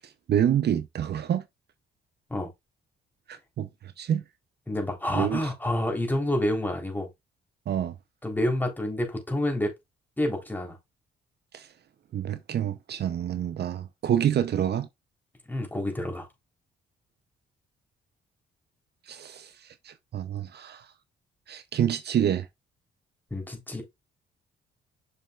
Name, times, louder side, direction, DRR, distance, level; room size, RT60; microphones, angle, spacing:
voice 1, 0.0-1.4 3.3-3.7 4.0-4.2 5.1-5.4 7.7-8.0 11.5-11.7 12.1-14.9 19.1-20.9 21.5-22.5, right 10 dB, 55° right, 0.7 m, -27 dB
voice 2, 4.7-7.1 8.2-9.7 10.2-10.8 15.5-16.3 23.3-23.8, left 1 dB, 10° left, 3.6 m, -28 dB
6.7 x 6.6 x 2.4 m
cardioid pair, 90°, 20 cm